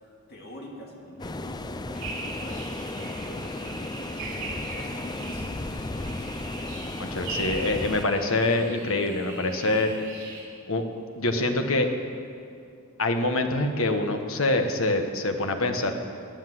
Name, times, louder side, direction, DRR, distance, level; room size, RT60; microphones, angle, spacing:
voice 1, 0.3-6.2, equal, 45° left, -1 dB, 2.7 m, -45 dB
sound 1, 1.2-8.0, left 2 dB, 20° left, 0.5 m, -34 dB
sound 2, 1.9-10.4, right 2 dB, 60° right, 5.5 m, -39 dB
voice 2, 7.0-9.9 10.7-10.8 11.2-11.9 13.0-15.9, left 2 dB, 70° left, 5 dB, 1.4 m, -25 dB
18.0 x 10.5 x 7.8 m, 2.4 s
head